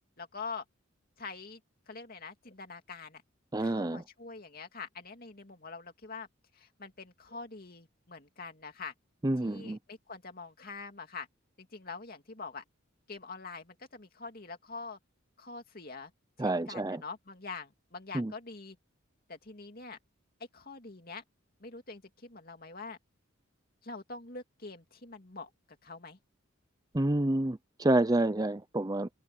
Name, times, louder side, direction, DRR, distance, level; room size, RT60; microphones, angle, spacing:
voice 1, 0.2-0.6 1.2-1.6 1.9-3.2 3.6-6.3 6.5-8.9 9.4-11.3 11.6-12.6 13.1-15.0 15.4-16.1 16.4-18.8 19.3-20.0 20.5-21.2 21.6-23.0 23.8-25.5 25.8-26.2, left 4 dB, 45° left, 2.8 m, -44 dB
voice 2, 3.5-4.0 9.2-9.8 16.4-17.0 18.1-18.3 26.9-29.1, right 1 dB, 20° right, 0.6 m, -28 dB
head